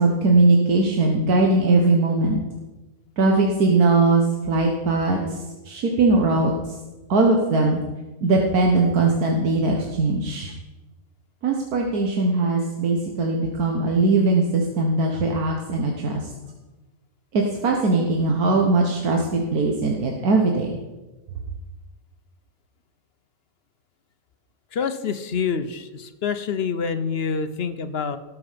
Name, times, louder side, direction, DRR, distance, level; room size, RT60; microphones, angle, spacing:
voice 1, 0.0-2.4 3.2-6.5 7.1-7.8 8.2-10.5 11.4-16.3 17.3-20.7, right 3 dB, 90° right, 0 dB, 1.7 m, -20 dB
voice 2, 24.7-28.2, left 6 dB, 50° left, 11 dB, 0.8 m, -26 dB
17.5 x 7.1 x 5.1 m, 1.1 s
omnidirectional pair, 1.5 m